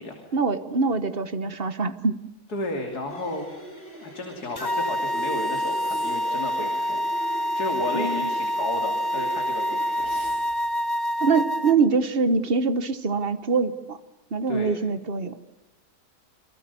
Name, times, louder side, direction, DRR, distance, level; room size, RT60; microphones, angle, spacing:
voice 1, 0.3-2.2 7.9-8.3 11.2-14.0 14.3-15.4, right 4 dB, 40° right, 12 dB, 1.4 m, -24 dB
voice 2, 2.5-3.5 4.0-7.0 7.6-10.1 14.5-14.8, left 2 dB, 75° left, 3 dB, 3.5 m, -33 dB
sound 1, 3.1-10.3, right 2 dB, 40° left, 4.4 m, -41 dB
sound 2, 4.6-11.7, equal, 20° left, 0.6 m, -27 dB
sound 3, 5.1-6.4 9.9-10.8, right 1 dB, 75° right, 7.7 m, -48 dB
28.5 x 23.5 x 7.0 m, 0.93 s
omnidirectional pair, 1.7 m